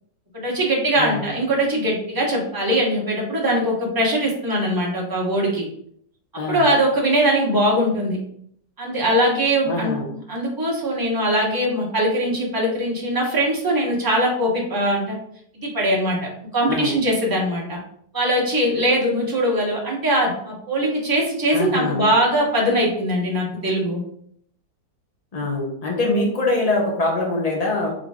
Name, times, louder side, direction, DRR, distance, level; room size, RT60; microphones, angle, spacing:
voice 1, 0.3-5.6 6.5-8.2 8.8-9.9 10.3-15.2 15.5-17.8 18.1-24.0, right 1 dB, 15° right, -3 dB, 0.8 m, -21 dB
voice 2, 6.4-6.7 9.7-10.1 16.7-16.9 21.5-22.0 25.3-27.9, left 2 dB, 75° left, -2 dB, 0.3 m, -23 dB
3.7 x 3.5 x 3.5 m, 0.67 s
omnidirectional pair, 2.0 m